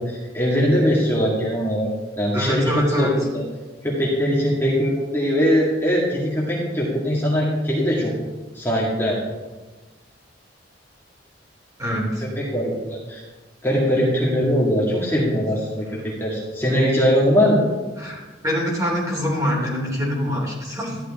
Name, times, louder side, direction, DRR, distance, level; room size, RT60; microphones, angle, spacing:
voice 1, 0.0-1.9 2.2-3.4 3.8-8.2 8.5-9.2 12.4-13.2 13.6-17.6, equal, 10° left, -6 dB, 2.2 m, -21 dB
voice 2, 2.3-3.1 11.8-12.2 18.0-21.0, equal, 20° right, -3 dB, 3.1 m, -24 dB
13.5 x 11.0 x 3.7 m, 1.2 s
head